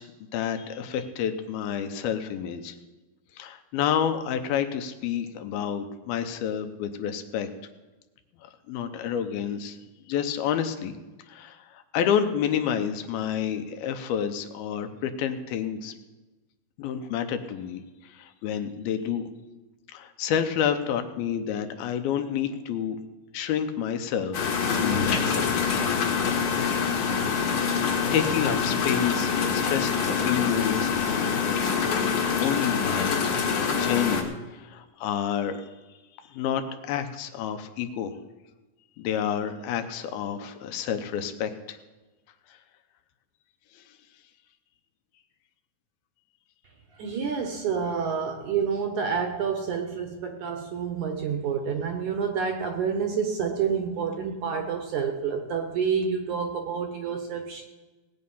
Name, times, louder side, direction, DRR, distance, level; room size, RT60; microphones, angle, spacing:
voice 1, 0.0-2.7 3.4-7.5 8.4-9.8 10.1-10.9 11.3-15.9 16.8-19.2 19.9-23.0 23.3-25.8 28.1-31.6 32.4-33.2 33.8-35.7 36.3-38.2 39.0-41.8 43.8-43.9, left 8 dB, 80° left, 8 dB, 2.7 m, -29 dB
sound 1, 24.3-34.2, left 6 dB, 60° left, 2.9 m, -25 dB
voice 2, 47.0-57.6, right 6 dB, 65° right, 4 dB, 2.0 m, -28 dB
18.5 x 8.7 x 5.5 m, 1.2 s
omnidirectional pair, 4.4 m